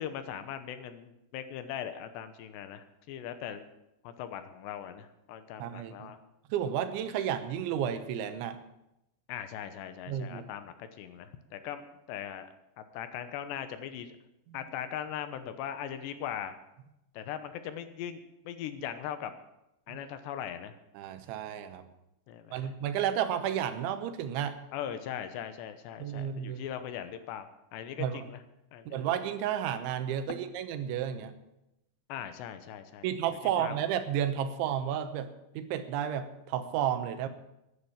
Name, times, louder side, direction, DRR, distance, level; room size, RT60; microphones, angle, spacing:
voice 1, 0.0-3.7 4.0-6.2 9.3-12.5 12.8-14.1 14.5-16.6 17.1-19.3 19.9-20.8 22.3-22.7 24.7-28.4 28.7-29.0 32.1-33.8, left 9 dB, 75° left, 10 dB, 3.0 m, -40 dB
voice 2, 5.6-6.1 6.5-8.6 10.1-10.4 19.9-20.0 21.0-21.9 22.5-24.6 26.0-26.7 28.0-28.3 28.9-31.3 33.0-37.3, right 9 dB, 90° right, 10 dB, 3.4 m, -32 dB
14.5 x 10.5 x 7.3 m, 0.88 s
omnidirectional pair, 5.2 m